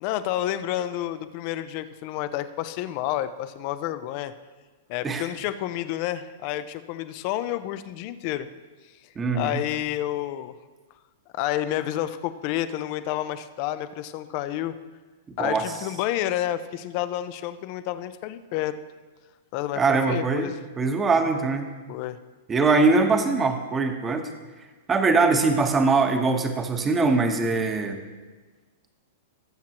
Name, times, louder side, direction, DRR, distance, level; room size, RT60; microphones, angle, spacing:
voice 1, 0.0-4.3 4.9-8.5 9.3-10.5 11.3-14.8 15.4-18.8 19.5-20.6 21.9-22.2, left 13 dB, 45° left, 12 dB, 0.6 m, -29 dB
voice 2, 9.1-9.6 15.4-15.6 19.7-20.5 20.8-21.6 22.5-24.3 24.9-28.0, right 3 dB, 20° right, 5 dB, 1.2 m, -22 dB
19.0 x 7.3 x 3.0 m, 1.3 s
hypercardioid pair, 130°, 0 cm